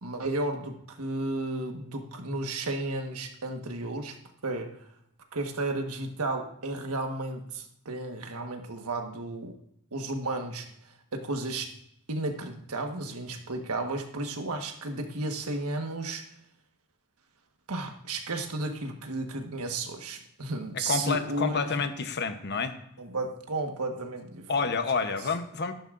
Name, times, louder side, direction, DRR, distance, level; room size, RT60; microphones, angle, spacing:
voice 1, 0.0-4.2 4.4-4.7 5.3-9.5 9.9-10.7 11.1-11.7 12.1-16.3 17.7-21.8 23.0-24.7 25.0-25.2, right 2 dB, 85° right, 4 dB, 1.4 m, -33 dB
voice 2, 20.7-22.8 24.5-25.7, left 4 dB, 50° left, 9 dB, 0.9 m, -29 dB
13.0 x 11.5 x 2.6 m, 0.74 s
head